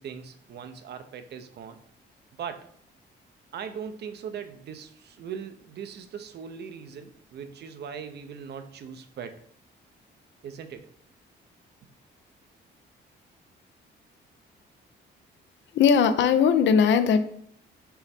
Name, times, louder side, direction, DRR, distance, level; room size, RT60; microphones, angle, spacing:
voice 1, 0.0-1.8 2.4-2.7 3.5-9.4 10.4-10.9 11.8-11.9, right 7 dB, 60° right, 9 dB, 0.5 m, -39 dB
voice 2, 15.7-17.2, left 7 dB, 65° left, 11 dB, 0.5 m, -19 dB
5.6 x 2.0 x 4.2 m, 0.65 s
cardioid pair, 90°, 20 cm